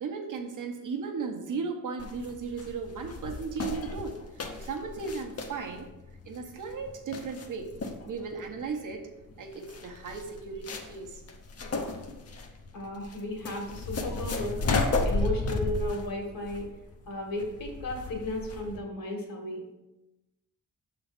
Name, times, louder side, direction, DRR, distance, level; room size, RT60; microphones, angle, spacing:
voice 1, 0.0-5.9 6.2-7.7 8.0-9.1 9.4-11.2, right 5 dB, 65° right, 3 dB, 0.9 m, -36 dB
sound 1, 2.0-18.8, left 3 dB, 45° left, 0.8 m, -34 dB
voice 2, 12.7-14.6 15.1-16.7 17.1-19.6, left 1 dB, 85° left, 1 dB, 1.9 m, -34 dB
6.9 x 3.8 x 5.2 m, 0.99 s
wide cardioid pair, 175°, 33 cm